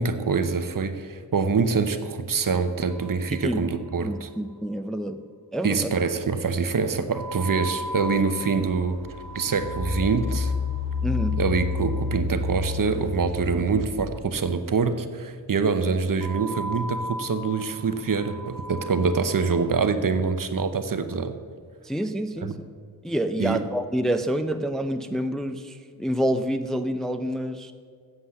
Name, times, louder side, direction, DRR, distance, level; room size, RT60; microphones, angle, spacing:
voice 1, 0.0-4.3 5.6-9.0 9.3-10.5 11.3-21.3 22.4-22.6 23.4-23.6, right 5 dB, 55° right, 9 dB, 0.8 m, -25 dB
sound 1, 2.9-3.9 4.2-4.3 4.5-4.6 7.1-13.3 16.2-19.8, equal, 70° left, 3.2 m, -38 dB
voice 2, 4.0-5.2 5.5-5.9 11.0-11.4 21.8-22.5 23.0-27.7, right 1 dB, ahead, 8 dB, 0.5 m, -27 dB
Engine, 7.6-7.7 8.3-14.3, left 4 dB, 30° left, 1.8 m, -30 dB
8.0 x 7.7 x 7.0 m, 2.1 s
wide cardioid pair, 80°, 39 cm